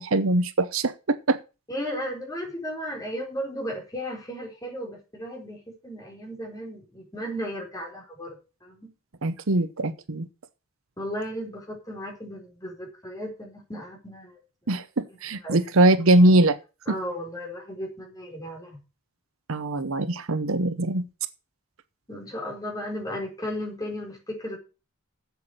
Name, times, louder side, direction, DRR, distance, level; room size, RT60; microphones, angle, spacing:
voice 1, 0.0-1.4 9.2-10.3 14.7-16.6 19.5-21.0, right 2 dB, 75° right, 0.9 m, -22 dB
voice 2, 1.7-8.9 11.0-14.3 14.7-14.8 15.4-15.6 16.9-18.8 22.1-24.6, equal, 15° left, 4.4 m, -35 dB
8.1 x 7.9 x 7.9 m
head